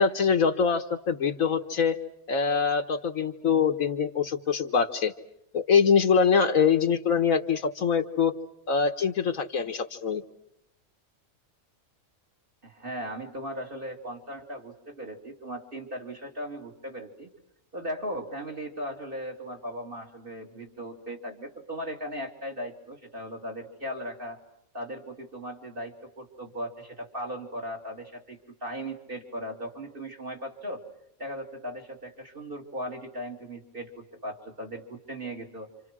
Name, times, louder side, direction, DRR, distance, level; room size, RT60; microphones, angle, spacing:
voice 1, 0.0-2.0 2.3-5.1 5.5-8.3 8.7-10.2, left 6 dB, 70° left, 7 dB, 1.7 m, -24 dB
voice 2, 12.6-17.3 17.7-24.4 24.7-30.8 31.2-35.7, equal, 40° right, 3 dB, 3.4 m, -37 dB
29.5 x 27.0 x 6.1 m, 0.78 s
omnidirectional pair, 1.5 m